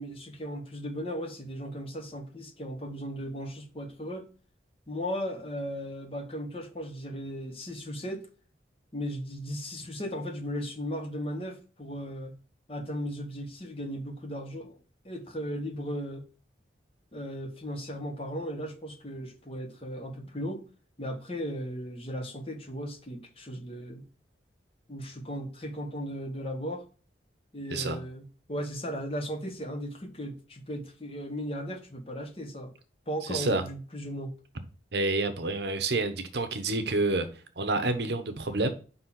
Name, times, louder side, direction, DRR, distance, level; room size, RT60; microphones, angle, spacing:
voice 1, 0.0-4.3 4.9-8.3 8.9-12.4 12.7-14.8 15.0-16.3 17.1-20.6 21.0-24.0 24.9-26.8 27.5-32.7 33.1-34.4, equal, 30° left, 1.2 m, -36 dB
voice 2, 33.3-33.6 34.9-37.3 37.6-38.7, right 2 dB, 65° right, 1.0 m, -28 dB
5.3 x 4.3 x 5.8 m
head